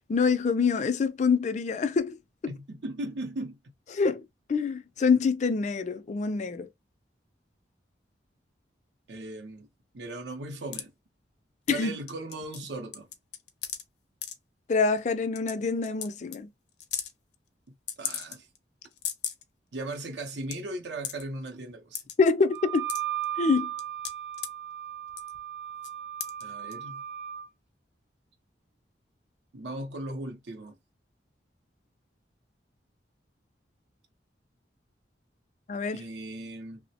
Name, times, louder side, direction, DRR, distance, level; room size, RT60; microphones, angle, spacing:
voice 1, 0.1-2.1 3.9-4.2 4.5-6.7 11.7-11.9 14.7-16.5 22.2-22.9 23.4-23.7 35.7-36.0, left 4 dB, 40° left, 0.3 m, -25 dB
voice 2, 2.5-3.6 9.1-9.7 9.9-10.9 11.7-13.1 18.0-18.5 19.7-22.0 26.4-27.0 29.5-30.8 35.9-36.8, right 2 dB, 75° right, 0.6 m, -37 dB
sound 1, 10.7-10.8 11.7-11.8 12.1-12.7 12.9-13.8 14.2-14.3 15.0-15.1 15.4-15.5 15.8-16.1 16.3-16.4 16.8-17.1 17.9-18.6 18.9-19.4 19.9-20.0 20.2-20.5 21.0-21.2 21.9-22.1 22.6-23.2 23.8-24.5 25.1-25.4 25.8-25.9 26.2-26.4 26.7-26.8, left 9 dB, 70° left, 0.7 m, -35 dB
Wind instrument woodwind instrument, 22.5-27.5, right 11 dB, 35° right, 0.7 m, -36 dB
3.1 x 2.0 x 2.7 m
head